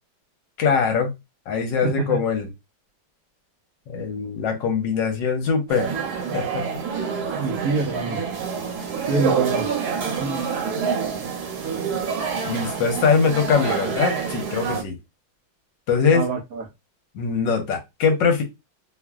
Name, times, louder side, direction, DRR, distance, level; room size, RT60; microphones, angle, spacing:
voice 1, 0.6-1.1 1.5-2.5 3.9-6.6 12.5-15.0 15.9-16.3 17.1-18.4, left 5 dB, 70° left, 4 dB, 1.3 m, -22 dB
voice 2, 1.8-2.2 7.4-8.2 9.1-9.7 10.2-10.4 16.1-16.6, right 3 dB, 75° right, -3 dB, 0.8 m, -25 dB
sound 1, 5.7-14.8, right 6 dB, 60° right, 1.1 m, -27 dB
3.1 x 2.5 x 2.3 m, 0.22 s
omnidirectional pair, 2.2 m